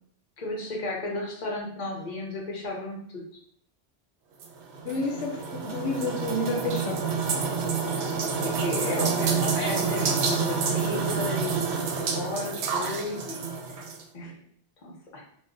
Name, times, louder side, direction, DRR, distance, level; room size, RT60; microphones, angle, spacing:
voice 1, 0.4-3.2 7.9-8.1 8.4-13.5 14.1-14.4 14.8-15.2, left 2 dB, 45° left, -2 dB, 0.9 m, -34 dB
sound 1, 4.4-14.0, right 5 dB, 70° right, 0.8 m, -28 dB
voice 2, 4.8-7.0, left 2 dB, 90° left, 3 dB, 0.9 m, -30 dB
2.6 x 2.3 x 3.6 m, 0.65 s
omnidirectional pair, 1.2 m